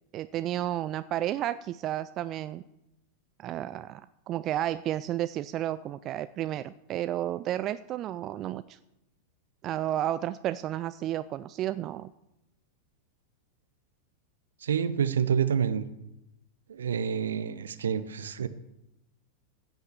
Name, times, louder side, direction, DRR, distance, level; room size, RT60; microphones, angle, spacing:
voice 1, 0.1-2.6 3.4-4.0 4.3-8.8 9.6-12.1, right 12 dB, 35° right, 15 dB, 0.3 m, -32 dB
voice 2, 14.6-15.9 16.7-18.5, right 7 dB, 65° right, 13 dB, 0.8 m, -28 dB
16.0 x 5.8 x 7.1 m, 0.90 s
figure-of-eight pair, 90°, 0 cm